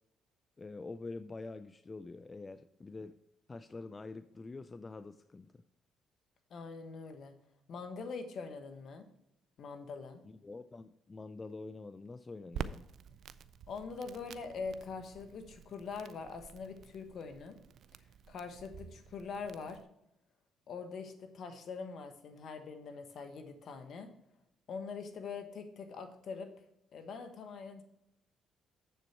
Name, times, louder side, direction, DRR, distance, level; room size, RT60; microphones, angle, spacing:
voice 1, 0.6-3.2 3.5-5.6 10.2-12.8, left 3 dB, 30° left, 12 dB, 0.4 m, -46 dB
voice 2, 6.5-7.4 7.7-9.1 9.6-10.2 13.7-17.6 18.3-19.8 20.7-24.1 24.7-26.5 26.9-27.8, left 5 dB, 60° left, 7 dB, 1.3 m, -43 dB
Crackle, 12.5-19.8, right 7 dB, 65° right, 0.4 m, -48 dB
7.4 x 7.0 x 4.3 m, 0.80 s
supercardioid pair, 60°, 0 cm